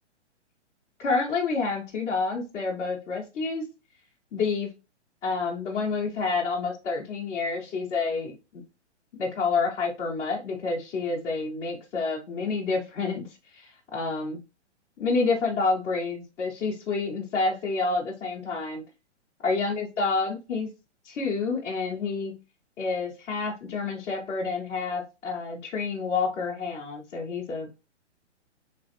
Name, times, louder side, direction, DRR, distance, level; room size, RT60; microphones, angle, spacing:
voice 1, 1.0-3.7 4.3-4.7 5.2-8.6 9.2-14.4 15.0-18.8 19.4-20.7 21.0-22.3 22.8-27.7, left 4 dB, 5° left, -5 dB, 0.3 m, -28 dB
3.2 x 2.9 x 2.8 m, 0.28 s
figure-of-eight pair, 125°, 36 cm